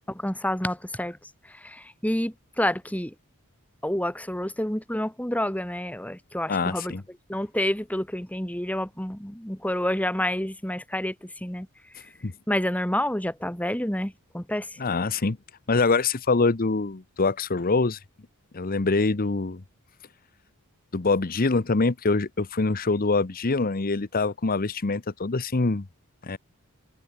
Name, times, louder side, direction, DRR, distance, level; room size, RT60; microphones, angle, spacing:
voice 1, 0.1-1.2 1.6-3.1 3.8-6.9 7.3-11.7 12.5-14.7, left 1 dB, 5° left, 2.7 m, -28 dB
voice 2, 6.5-7.0 12.2-12.3 14.8-15.4 15.7-18.0 18.5-19.6 20.9-25.9 26.2-26.4, left 3 dB, 40° left, 0.8 m, -24 dB
head